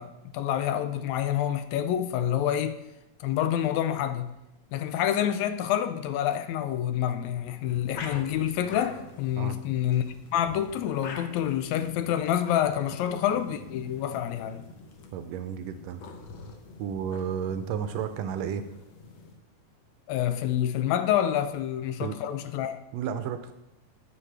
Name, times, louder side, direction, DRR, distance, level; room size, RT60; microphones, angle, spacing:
voice 1, 0.0-2.8 3.2-4.3 4.7-10.1 10.3-14.7 20.1-22.8, left 10 dB, 80° left, 1.9 m, -27 dB
sound 1, 7.6-19.4, left 4 dB, 65° left, 1.3 m, -46 dB
voice 2, 15.1-16.0 16.8-18.6 22.0-22.2 22.9-23.5, right 8 dB, 80° right, 1.6 m, -32 dB
11.5 x 7.5 x 3.3 m
omnidirectional pair, 3.3 m